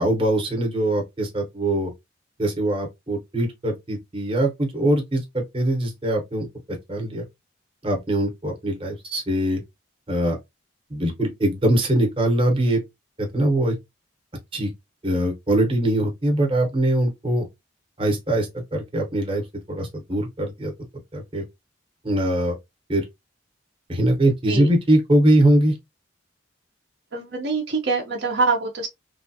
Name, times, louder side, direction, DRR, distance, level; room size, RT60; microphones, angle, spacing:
voice 1, 0.0-1.9 2.4-6.5 6.9-7.2 7.8-9.6 10.1-10.4 10.9-12.8 13.2-13.7 14.5-14.7 15.0-17.5 18.0-19.4 19.7-20.7 21.1-21.4 22.0-22.6 22.9-23.0 23.9-25.7, right 1 dB, 25° right, 0.8 m, -22 dB
voice 2, 27.1-28.9, right 3 dB, 55° right, 0.6 m, -24 dB
3.2 x 2.2 x 2.6 m
head